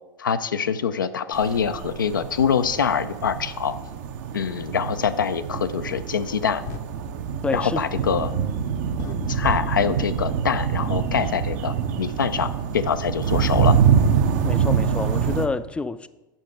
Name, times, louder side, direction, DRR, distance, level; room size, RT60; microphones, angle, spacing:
voice 1, 0.2-3.8 4.3-6.6 7.5-8.3 9.3-13.8, left 7 dB, 80° left, 10 dB, 0.4 m, -24 dB
sound 1, 1.3-15.5, right 7 dB, 55° right, 0.7 m, -25 dB
sound 2, 6.2-6.4 6.7-6.9 9.0-9.1 9.4-9.6, left 9 dB, 60° left, 0.7 m, -34 dB
voice 2, 7.4-7.8 14.4-16.1, left 3 dB, 10° left, 13 dB, 0.4 m, -28 dB
8.5 x 5.7 x 5.0 m, 1.0 s
figure-of-eight pair, 85°, 11 cm